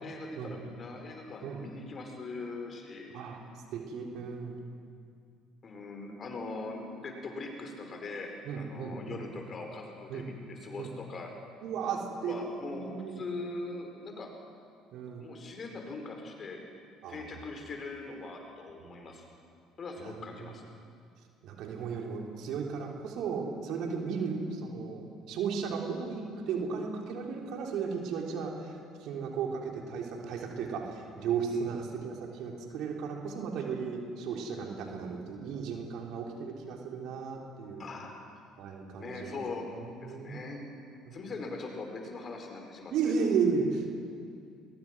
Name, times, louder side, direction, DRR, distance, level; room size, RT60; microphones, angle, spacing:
voice 1, 0.0-3.1 5.6-11.3 12.2-14.3 15.1-16.6 17.1-19.2 19.8-20.6 31.5-31.7 37.8-38.1 39.0-39.7 40.0-40.7 41.1-43.1, left 3 dB, 40° left, 3 dB, 4.9 m, -41 dB
voice 2, 3.7-4.6 8.5-9.2 10.1-10.3 10.8-10.9 11.6-12.4 12.7-13.2 14.9-15.3 17.0-17.2 18.9-19.1 20.0-20.2 21.4-28.7 29.0-37.8 38.6-39.4 39.7-40.5 41.1-41.3 42.9-43.9, right 5 dB, 65° right, 1 dB, 3.5 m, -34 dB
22.0 x 21.5 x 6.2 m, 2.4 s
hypercardioid pair, 60°, 0 cm